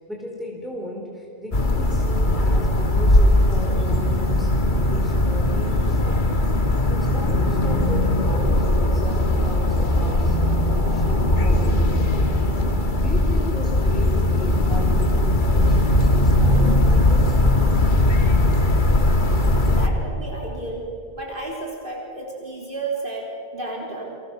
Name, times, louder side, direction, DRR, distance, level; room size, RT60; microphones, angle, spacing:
voice 1, 0.1-6.3 6.9-12.3 13.0-17.4, left 1 dB, ahead, -2 dB, 4.3 m, -35 dB
sound 1, 1.5-19.9, left 1 dB, 50° left, 1.9 m, -19 dB
voice 2, 19.7-20.9 21.1-24.2, right 2 dB, 55° right, -3 dB, 4.0 m, -32 dB
30.0 x 26.5 x 6.3 m, 2.8 s
omnidirectional pair, 1.1 m